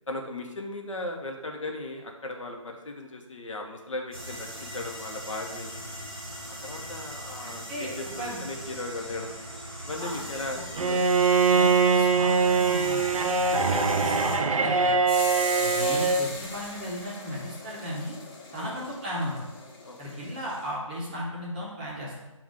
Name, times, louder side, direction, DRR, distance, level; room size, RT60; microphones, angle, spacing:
voice 1, 0.1-6.0 6.6-9.3 9.8-10.6 10.9-11.0 15.6-16.0 18.5-18.7 19.8-20.2, left 2 dB, 70° left, 3 dB, 0.8 m, -37 dB
sound 1, 4.1-14.4, equal, 5° left, 1.0 m, -40 dB
voice 2, 7.4-7.9 8.2-8.4 10.0-10.4 10.7-11.0 11.4-13.0 13.5-14.9 15.6-18.2 18.5-19.5 20.0-22.1, equal, 15° right, -6 dB, 0.7 m, -36 dB
Bowed string instrument, 10.8-16.3, right 4 dB, 85° right, 0.5 m, -22 dB
sound 2, 15.1-20.7, left 2 dB, 45° left, 1.2 m, -39 dB
5.9 x 2.4 x 3.6 m, 1.0 s
figure-of-eight pair, 165°, 17 cm